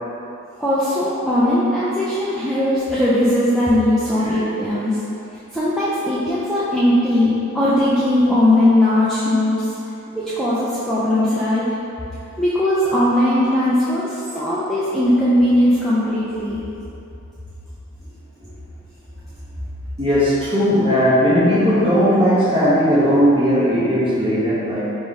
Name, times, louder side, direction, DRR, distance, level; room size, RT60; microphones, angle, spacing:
voice 1, 0.6-4.9 5.5-9.6 10.1-11.6 12.4-16.6, left 1 dB, ahead, -11 dB, 0.4 m, -18 dB
voice 2, 4.2-4.6 20.0-24.9, equal, 25° right, -10 dB, 1.1 m, -17 dB
3.6 x 2.6 x 4.6 m, 2.8 s
head